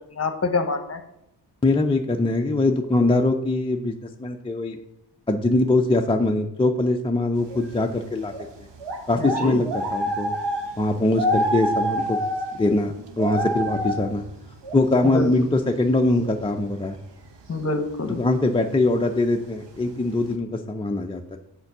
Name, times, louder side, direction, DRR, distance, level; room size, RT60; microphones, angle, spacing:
voice 1, 0.1-1.0 9.2-9.6 15.0-15.3 17.5-18.2, left 3 dB, 35° left, 9 dB, 1.0 m, -26 dB
voice 2, 1.6-4.8 5.3-8.3 9.1-10.3 10.8-12.2 12.6-14.2 14.7-17.0 18.2-21.4, left 2 dB, 15° left, 3 dB, 0.4 m, -22 dB
sound 1, 7.5-7.7 8.3-15.9 16.2-16.5 17.5-17.6 18.0-18.4 19.0-19.3 19.9-20.0 20.2-20.3, equal, 75° right, 1.1 m, -27 dB
7.2 x 4.4 x 6.5 m, 0.82 s
wide cardioid pair, 105°, 43 cm